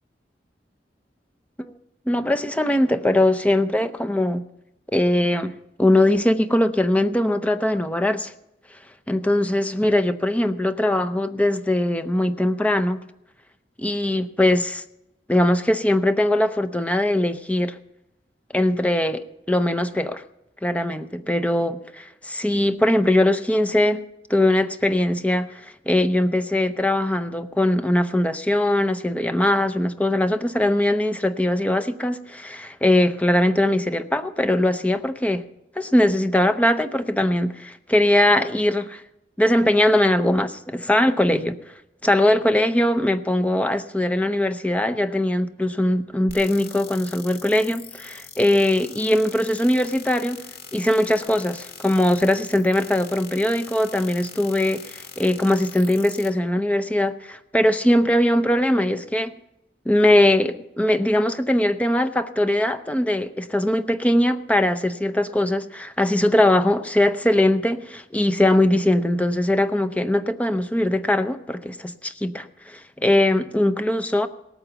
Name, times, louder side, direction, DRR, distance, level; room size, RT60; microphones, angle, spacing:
voice 1, 2.1-4.4 4.9-5.5 5.8-8.3 9.1-13.0 13.8-14.8 15.3-17.8 18.5-20.2 20.6-24.0 24.3-35.4 35.8-39.0 39.4-41.6 42.0-50.5 50.7-59.3 59.9-74.3, left 1 dB, 10° left, 10 dB, 0.6 m, -21 dB
sound 1, 46.3-56.3, left 6 dB, 60° left, 1.9 m, -42 dB
18.0 x 8.9 x 6.9 m, 0.87 s
head